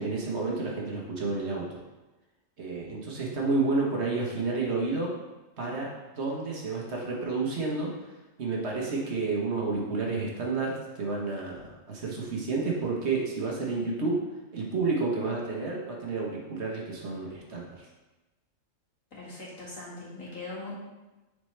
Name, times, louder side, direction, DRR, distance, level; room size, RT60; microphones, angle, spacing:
voice 1, 0.0-1.8 2.6-5.1 5.6-5.9 6.2-7.9 8.4-14.2 14.5-17.9, right 3 dB, 55° right, -2 dB, 1.3 m, -30 dB
voice 2, 19.1-20.7, left 2 dB, 75° left, -7 dB, 2.3 m, -40 dB
6.4 x 5.0 x 3.2 m, 1.1 s
omnidirectional pair, 1.4 m